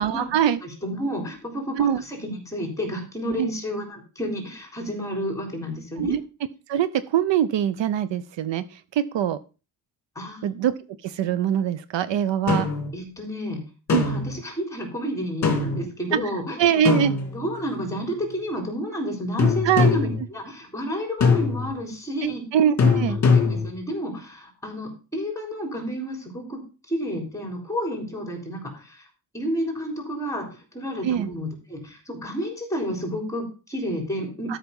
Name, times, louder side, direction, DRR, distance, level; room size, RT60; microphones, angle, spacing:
voice 1, 0.0-0.6 1.8-2.0 3.4-3.5 6.0-6.2 6.7-9.4 10.4-10.7 11.0-12.7 13.9-14.1 16.6-17.1 19.6-19.9 22.2-23.2 31.0-31.3 34.5-34.6, right 9 dB, 70° right, 15 dB, 0.7 m, -23 dB
voice 2, 0.6-6.2 10.2-10.4 12.9-13.6 14.0-16.6 17.3-22.4 22.9-23.0 23.3-26.6 26.9-29.1 29.3-30.4 30.7-34.6, equal, 5° left, 2 dB, 3.8 m, -31 dB
sound 1, 12.5-12.9 13.9-14.4 15.4-15.9 16.9-17.7 19.4-20.2 21.2-21.8 22.8-23.8, left 4 dB, 35° left, 2.2 m, -21 dB
13.0 x 5.9 x 5.3 m, 0.33 s
wide cardioid pair, 170°, 45 cm